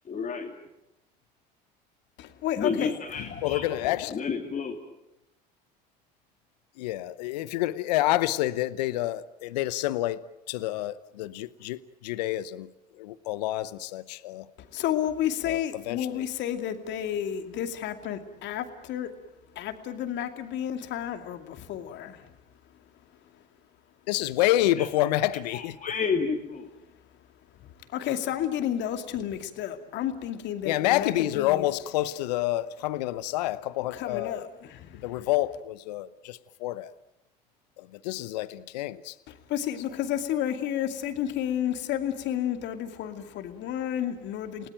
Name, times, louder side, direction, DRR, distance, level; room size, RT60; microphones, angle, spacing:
voice 1, 0.0-0.5 2.6-3.6 4.1-4.8 24.8-24.9 25.5-26.7, left 5 dB, 35° left, -1 dB, 3.0 m, -30 dB
voice 2, 2.2-2.9 3.2-3.3 14.6-19.1 19.5-22.3 27.6-31.7 33.9-35.1 39.3-44.7, left 10 dB, 60° left, 7 dB, 2.5 m, -31 dB
voice 3, 3.4-4.2 6.8-10.2 10.5-12.7 13.0-14.5 15.5-16.2 24.1-25.8 30.6-34.5 34.9-36.9 37.8-39.1, left 15 dB, 80° left, 17 dB, 0.9 m, -28 dB
29.5 x 18.0 x 9.1 m, 0.88 s
hypercardioid pair, 70°, 21 cm